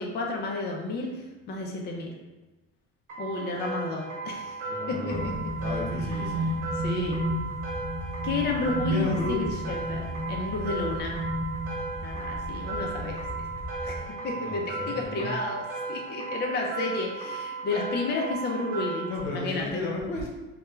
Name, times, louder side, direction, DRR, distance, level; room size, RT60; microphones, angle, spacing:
voice 1, 0.0-2.1 3.2-4.6 4.9-5.3 6.8-7.2 8.2-11.2 12.0-13.5 13.8-14.0 14.2-19.8, left 3 dB, 30° left, 0 dB, 0.5 m, -32 dB
sound 1, 3.1-19.2, right 3 dB, 85° right, 0.9 m, -36 dB
voice 2, 4.6-5.3 5.6-6.5 8.9-9.4 14.4-15.3 19.1-20.3, left 3 dB, 80° left, -2 dB, 0.8 m, -33 dB
sound 2, 5.1-14.0, equal, 10° right, 1.0 m, -33 dB
2.3 x 2.2 x 3.0 m, 1.1 s
supercardioid pair, 85°, 32 cm